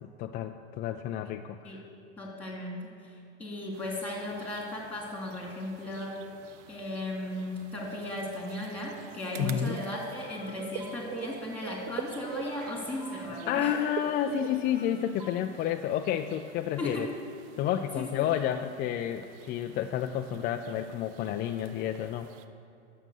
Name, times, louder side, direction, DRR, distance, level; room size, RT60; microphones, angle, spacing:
voice 1, 0.0-1.8 9.4-9.8 13.1-17.1 17.6-22.3, left 10 dB, 30° left, 5 dB, 0.3 m, -31 dB
voice 2, 2.2-6.3 6.7-13.7 16.8-17.1 17.9-18.0, left 1 dB, 5° left, -2 dB, 3.0 m, -36 dB
sound 1, 3.7-22.5, right 9 dB, 55° right, 0.7 m, -46 dB
sound 2, 9.4-10.5 10.8-11.1 11.6-12.7 13.0-13.3 13.8-14.9 15.2-15.3, equal, 20° right, 1.4 m, -48 dB
11.0 x 7.6 x 6.6 m, 2.5 s
hypercardioid pair, 115°, 34 cm